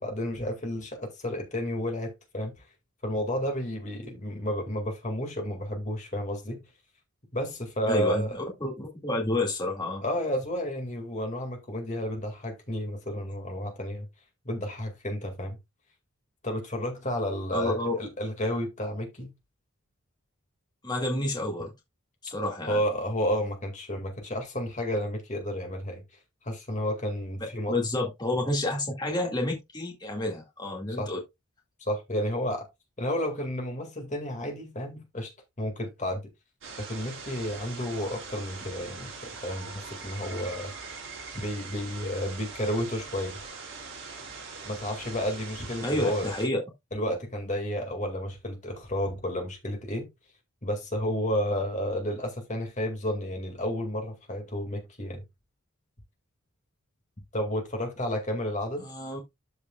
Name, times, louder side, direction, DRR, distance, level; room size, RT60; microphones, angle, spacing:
voice 1, 0.0-2.6 3.0-6.6 7.3-8.3 10.0-14.1 14.5-15.6 16.4-19.3 22.7-26.0 26.4-27.8 31.0-31.1 31.9-32.7 33.0-35.3 35.6-36.2 36.8-40.7 41.3-43.4 44.7-46.3 46.9-50.1 50.6-55.2 57.3-58.9, equal, 35° left, 2.2 m, -31 dB
voice 2, 7.9-10.0 17.5-17.9 20.8-21.7 22.2-22.8 27.7-31.2 45.8-46.6 58.8-59.2, left 1 dB, 20° left, 2.1 m, -29 dB
sound 1, 36.6-46.4, right 4 dB, 65° right, 4.8 m, -42 dB
13.5 x 5.0 x 2.4 m
head